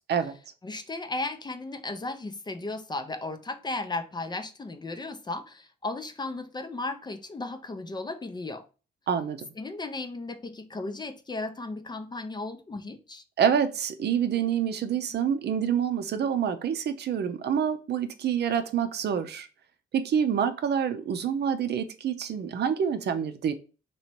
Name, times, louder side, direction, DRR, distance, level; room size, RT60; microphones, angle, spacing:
voice 1, 0.6-8.6 9.6-13.2, left 2 dB, 20° left, 0.5 m, -35 dB
voice 2, 9.1-9.5 13.4-19.5 19.9-23.5, right 8 dB, 55° right, 0.6 m, -27 dB
3.0 x 2.9 x 4.4 m
cardioid pair, 90°, 20 cm